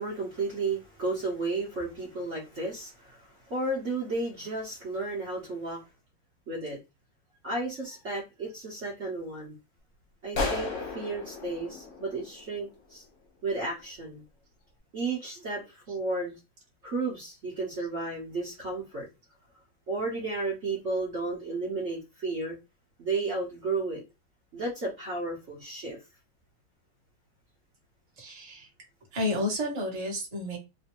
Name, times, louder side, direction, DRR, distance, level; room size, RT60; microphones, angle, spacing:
voice 1, 0.0-5.8 6.5-6.8 7.4-9.5 10.2-13.0 13.4-14.2 14.9-16.4 16.8-19.1 19.9-22.6 23.0-24.0 24.5-26.0, right 3 dB, 45° right, 1.2 m, -33 dB
sound 1, 10.3-12.9, left 3 dB, 50° left, 1.1 m, -34 dB
voice 2, 28.2-28.7 29.1-30.6, left 1 dB, 25° right, 1.0 m, -31 dB
3.3 x 2.7 x 3.0 m
omnidirectional pair, 2.2 m